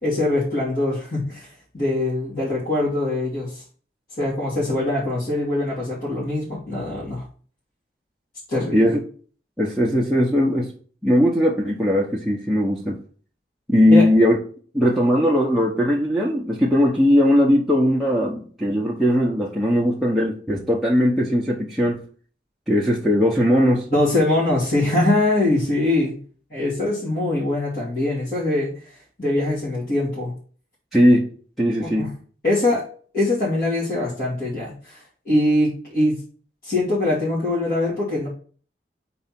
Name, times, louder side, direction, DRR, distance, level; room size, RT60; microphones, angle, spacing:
voice 1, 0.0-1.5 1.7-3.6 4.2-7.2 8.5-8.9 13.9-14.1 23.9-26.2 26.5-28.7 29.2-30.3 31.8-32.1 32.4-32.9 33.1-35.0 35.2-36.2 36.6-38.3, left 2 dB, 55° left, -8 dB, 2.6 m, -22 dB
voice 2, 9.6-10.7 11.0-13.0 13.7-14.3 14.7-22.0 22.7-23.9 30.9-31.3 31.6-32.1, equal, ahead, -2 dB, 0.8 m, -19 dB
4.6 x 4.2 x 5.8 m, 0.43 s
head